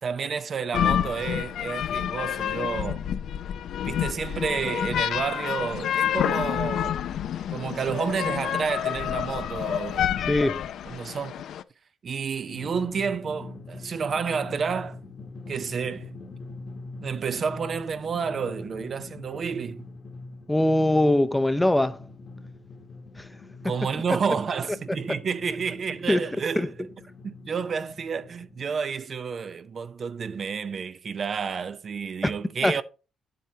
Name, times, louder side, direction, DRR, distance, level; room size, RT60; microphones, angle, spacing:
voice 1, 0.0-3.1 3.8-7.0 7.5-10.1 10.9-11.4 12.0-15.0 15.5-16.1 17.0-19.9 23.6-26.7 27.2-32.8, right 6 dB, 50° right, 0.5 m, -30 dB
sound 1, 0.7-11.6, left 10 dB, 70° left, 0.4 m, -28 dB
voice 2, 10.3-10.7 20.5-22.0 23.2-23.3 25.1-25.2 26.1-26.3 26.6-26.7 32.2-32.3 32.6-32.8, left 1 dB, 10° left, 0.6 m, -22 dB
Drum, 12.5-28.7, left 3 dB, 45° left, 1.1 m, -43 dB
8.9 x 7.6 x 2.8 m
cardioid pair, 90°, 0 cm